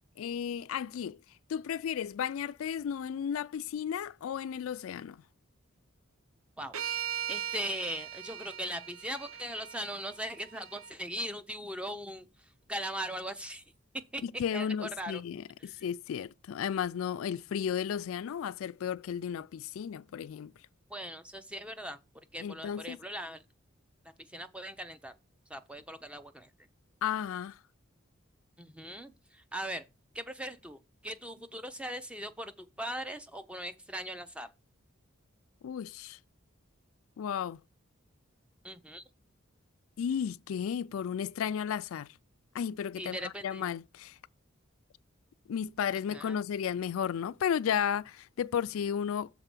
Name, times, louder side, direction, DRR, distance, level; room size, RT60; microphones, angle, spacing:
voice 1, 0.2-1.2 1.5-5.2 14.2-20.5 22.4-23.0 27.0-27.6 35.6-36.2 37.2-37.6 40.0-42.1 42.5-44.2 45.5-49.3, left 8 dB, 80° left, 0.3 m, -34 dB
sound 1, 6.7-10.9, right 10 dB, 90° right, 0.6 m, -39 dB
voice 2, 7.3-12.3 12.7-13.6 14.1-14.2 14.5-15.2 15.6-15.8 20.9-22.0 22.3-23.4 24.3-25.1 25.5-26.5 28.6-29.8 30.1-34.5 38.6-39.0 43.0-43.7 46.1-46.4, equal, 5° right, 0.6 m, -39 dB
6.7 x 4.0 x 6.0 m
head